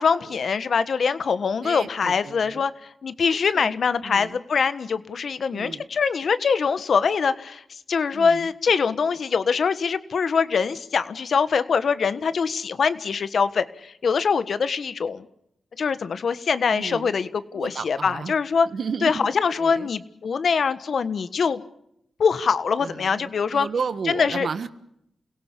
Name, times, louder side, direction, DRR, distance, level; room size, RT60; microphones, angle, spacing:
voice 1, 0.0-15.3 15.8-18.7 19.0-21.6 22.2-23.7 24.1-24.5, left 5 dB, 70° left, 13 dB, 1.4 m, -23 dB
voice 2, 1.6-2.6 3.3-3.7 4.0-4.4 5.5-5.8 8.1-8.5 16.7-17.1 17.5-18.3 18.6-19.2 19.6-19.9 22.8-24.7, right 5 dB, 70° right, 12 dB, 1.4 m, -33 dB
28.5 x 17.5 x 8.5 m, 0.77 s
cardioid pair, 50°, 0 cm